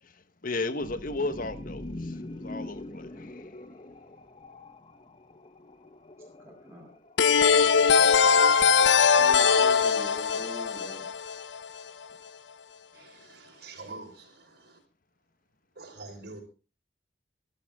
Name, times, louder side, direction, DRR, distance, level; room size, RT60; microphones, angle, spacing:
voice 1, 0.0-3.6, left 2 dB, 50° left, 1.5 m, -35 dB
sound 1, 0.8-7.7, left 1 dB, 35° left, 1.1 m, -43 dB
voice 2, 6.4-6.9 9.2-11.1, equal, 15° right, 7.6 m, -43 dB
sound 2, 7.2-11.8, left 6 dB, 90° left, 0.8 m, -21 dB
voice 3, 12.9-14.8 15.7-16.4, right 3 dB, 65° right, 5.3 m, -45 dB
23.5 x 13.5 x 3.8 m
head